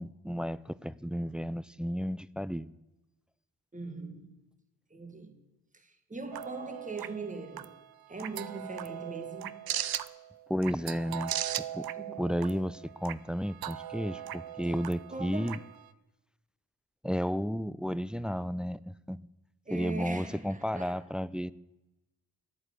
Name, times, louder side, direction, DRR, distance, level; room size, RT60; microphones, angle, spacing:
voice 1, 0.0-2.7 10.5-11.3 11.7-11.9 12.2-15.6 17.0-19.3 19.7-21.5, equal, ahead, 0.3 m, -33 dB
voice 2, 3.7-4.3 4.9-5.4 5.7-7.7 8.1-9.6 12.0-12.2 15.1-15.5 19.7-21.1, right 3 dB, 20° right, 1.8 m, -41 dB
sound 1, 6.3-15.9, right 11 dB, 70° right, 0.6 m, -39 dB
11.0 x 8.8 x 8.1 m
cardioid pair, 60°, 37 cm